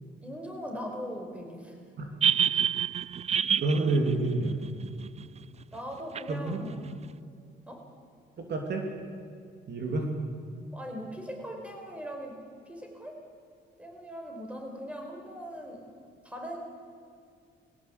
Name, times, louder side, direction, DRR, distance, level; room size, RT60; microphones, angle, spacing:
voice 1, 0.2-1.8 2.5-2.6 5.7-6.9 7.7-7.9 10.7-12.4 12.7-13.2 13.8-15.9 16.2-16.6, equal, 5° right, 2 dB, 4.8 m, -40 dB
sound 1, 2.2-5.2 6.1-6.2, right 8 dB, 35° right, 0.4 m, -27 dB
voice 2, 3.6-4.6 6.3-6.6 8.4-8.9 9.7-10.1, right 2 dB, 60° right, 3 dB, 3.0 m, -28 dB
20.0 x 17.0 x 8.3 m, 2.3 s
cardioid pair, 90°, 20 cm